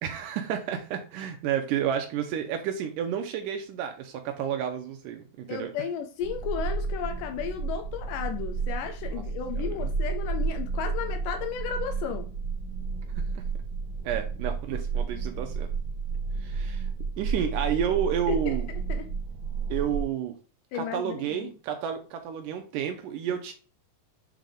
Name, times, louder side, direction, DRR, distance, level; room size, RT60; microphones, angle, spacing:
voice 1, 0.0-5.7 9.1-9.2 14.0-15.7 16.4-16.9 17.2-18.7 19.7-20.3 20.7-23.5, right 9 dB, 80° right, 2.3 m, -30 dB
voice 2, 5.5-12.3 18.3-19.1 20.7-21.5, left 8 dB, 85° left, 2.3 m, -34 dB
sound 1, 6.2-20.0, right 5 dB, 60° right, 1.3 m, -31 dB
8.2 x 3.4 x 3.8 m
omnidirectional pair, 3.8 m